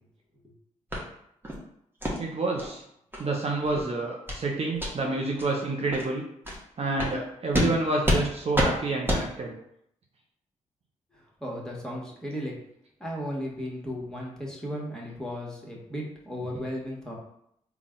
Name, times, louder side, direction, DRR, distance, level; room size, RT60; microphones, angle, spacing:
sound 1, 0.9-1.0 1.4-1.6 2.0-2.2 2.6-2.7 3.1-3.2 3.6-3.8 4.3-4.4 4.7-4.9 5.4-5.5 5.9-6.0 6.4-6.6 7.0-7.1 7.5-7.7 8.0-8.2 8.5-8.7 9.1-9.2, equal, 15° right, 1.2 m, -26 dB
voice 1, 2.2-2.8 3.2-6.2 6.8-9.6, right 2 dB, 45° right, 0 dB, 0.7 m, -28 dB
voice 2, 11.1-12.6 13.0-17.1, equal, 5° left, -3 dB, 1.4 m, -35 dB
3.9 x 2.3 x 3.8 m, 0.75 s
supercardioid pair, 45°, 14 cm